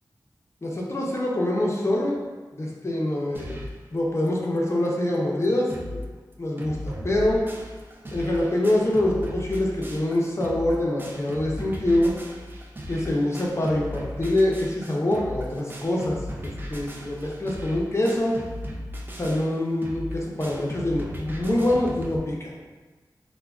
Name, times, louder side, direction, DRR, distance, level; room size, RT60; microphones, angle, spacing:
voice 1, 0.6-2.2 2.6-3.6 3.9-5.7 6.4-7.4 8.1-12.1 12.9-18.3 19.2-22.5, left 1 dB, 35° left, -3 dB, 0.5 m, -25 dB
sound 1, 3.3-3.8 4.3-4.4 4.6-4.7 5.1-5.2 5.4-6.0 6.3-22.2, equal, 25° right, 0.3 m, -37 dB
3.4 x 2.0 x 2.3 m, 1.3 s
wide cardioid pair, 75°, 8 cm